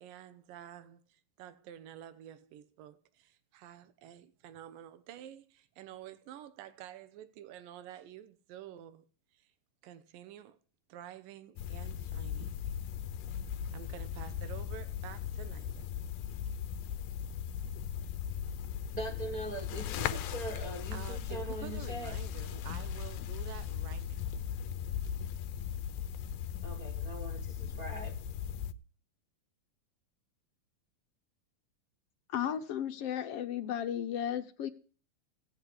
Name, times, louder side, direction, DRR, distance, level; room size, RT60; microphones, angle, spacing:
voice 1, 0.0-9.1 9.3-9.5 9.8-10.6 10.9-12.6 13.7-15.9 16.3-16.6 20.9-24.3, right 11 dB, 85° right, 2.7 m, -49 dB
sound 1, 11.6-28.7, left 9 dB, 85° left, 2.5 m, -38 dB
voice 2, 18.9-22.2 26.6-28.2, right 2 dB, 40° right, 1.4 m, -41 dB
voice 3, 32.3-34.7, left 9 dB, 65° left, 1.6 m, -34 dB
17.0 x 6.7 x 9.7 m
omnidirectional pair, 3.9 m